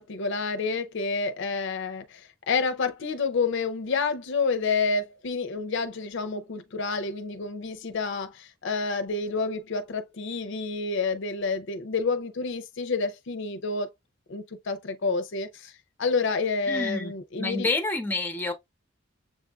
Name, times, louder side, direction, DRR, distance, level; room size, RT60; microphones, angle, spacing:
voice 1, 0.0-2.2 2.5-13.9 14.3-15.7 16.0-17.7, left 4 dB, 65° left, 0.5 m, -29 dB
voice 2, 16.7-17.1 17.4-18.5, left 2 dB, 10° left, 0.7 m, -28 dB
7.1 x 2.4 x 2.3 m
head